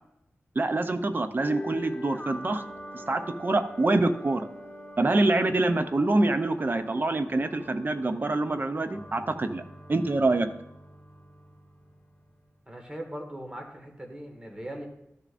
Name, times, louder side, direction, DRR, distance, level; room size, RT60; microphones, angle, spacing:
voice 1, 0.6-2.6 2.9-4.5 5.0-9.6 9.9-10.5, right 2 dB, 40° right, 8 dB, 0.6 m, -25 dB
sound 1, 1.4-12.4, equal, 20° left, 2.0 m, -44 dB
voice 2, 12.7-14.9, right 1 dB, 20° right, 2 dB, 1.7 m, -39 dB
13.0 x 6.6 x 2.6 m, 0.80 s
wide cardioid pair, 80°, 5 cm